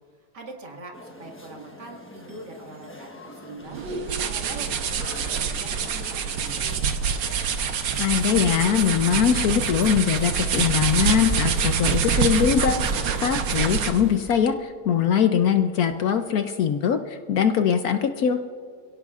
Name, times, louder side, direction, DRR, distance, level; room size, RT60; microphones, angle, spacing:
voice 1, 0.2-3.8 4.2-6.7, right 2 dB, 65° right, 0 dB, 2.6 m, -43 dB
sound 1, 0.9-14.5, left 1 dB, 10° left, 0.7 m, -45 dB
sound 2, 3.7-14.1, right 6 dB, 85° right, 1.7 m, -25 dB
voice 2, 8.0-18.4, left 8 dB, 65° left, 7 dB, 1.0 m, -22 dB
27.5 x 16.5 x 2.4 m, 2.3 s
omnidirectional pair, 2.0 m